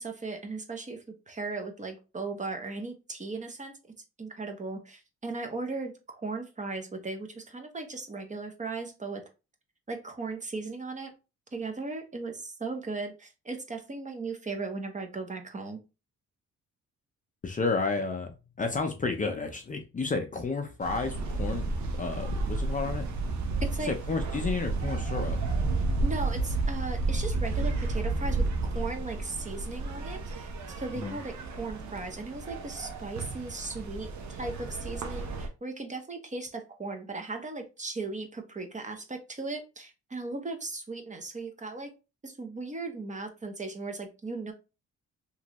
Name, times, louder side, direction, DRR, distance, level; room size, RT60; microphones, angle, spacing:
voice 1, 0.0-3.7 4.2-9.2 9.9-11.1 11.5-15.8 23.6-23.9 26.0-30.5 30.8-34.1 34.4-41.9 42.2-44.5, right 3 dB, 25° right, 0.7 m, -37 dB
voice 2, 17.4-21.7 22.0-23.1 23.8-25.4 30.9-31.2, left 4 dB, 25° left, 0.5 m, -31 dB
sound 1, 20.8-35.5, right 3 dB, 70° right, 0.8 m, -32 dB
3.0 x 2.5 x 2.9 m
cardioid pair, 90°, 30 cm